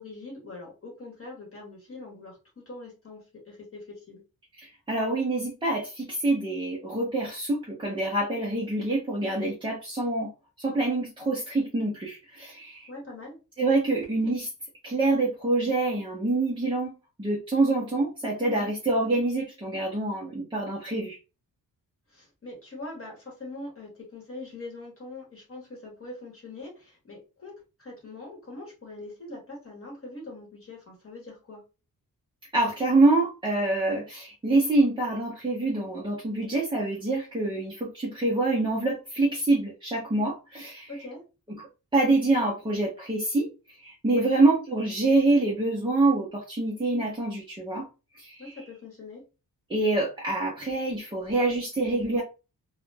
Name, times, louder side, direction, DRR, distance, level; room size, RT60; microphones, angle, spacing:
voice 1, 0.0-4.2 12.9-13.4 18.2-18.7 22.1-31.6 40.9-41.2 44.1-44.3 48.4-49.2, left 2 dB, 35° left, -2 dB, 0.9 m, -43 dB
voice 2, 4.6-10.3 10.6-12.9 13.6-14.5 14.8-21.2 32.5-40.9 41.9-47.9 48.1-48.5 49.7-52.2, right 2 dB, 15° right, -3 dB, 0.4 m, -26 dB
2.1 x 2.0 x 3.2 m, 0.30 s
wide cardioid pair, 160°, 37 cm